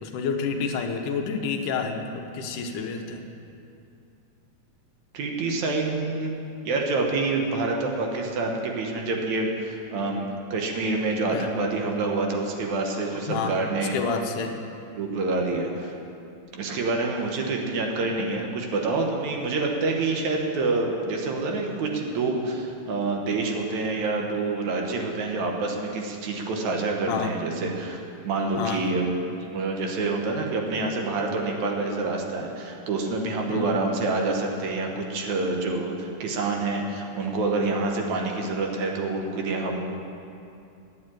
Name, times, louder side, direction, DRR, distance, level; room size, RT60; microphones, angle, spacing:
voice 1, 0.0-3.2 11.3-11.5 13.2-14.6 27.1-27.4 28.6-28.9 33.5-33.8, left 5 dB, 80° left, 4 dB, 2.4 m, -29 dB
voice 2, 5.1-6.3 6.6-14.0 15.0-16.0 16.5-28.0 28.2-29.1 29.5-39.8, right 3 dB, 70° right, 1 dB, 2.4 m, -27 dB
9.4 x 9.4 x 8.9 m, 2.6 s
omnidirectional pair, 3.6 m